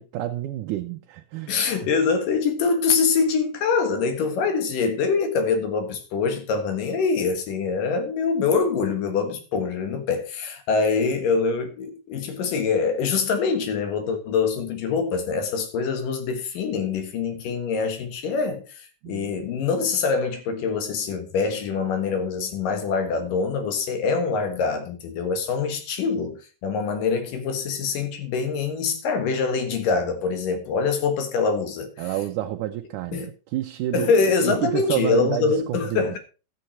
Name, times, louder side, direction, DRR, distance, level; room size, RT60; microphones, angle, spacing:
voice 1, 0.0-1.9 19.0-19.3 32.0-36.2, right 13 dB, 75° right, 2.1 m, -29 dB
voice 2, 1.5-31.9 33.1-33.3 33.9-36.2, left 5 dB, 80° left, 3.3 m, -24 dB
13.0 x 7.5 x 4.3 m
omnidirectional pair, 3.8 m